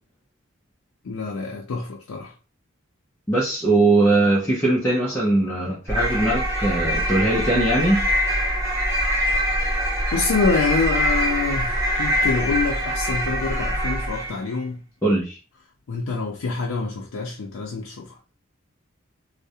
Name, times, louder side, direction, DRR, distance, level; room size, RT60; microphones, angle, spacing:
voice 1, 1.0-2.3 10.1-14.8 15.9-18.2, left 4 dB, 85° left, 0.4 m, -26 dB
voice 2, 3.3-8.1 15.0-15.4, right 2 dB, 10° left, 0.4 m, -20 dB
sound 1, 5.9-14.5, equal, 15° right, 0.8 m, -24 dB
2.3 x 2.0 x 2.6 m
head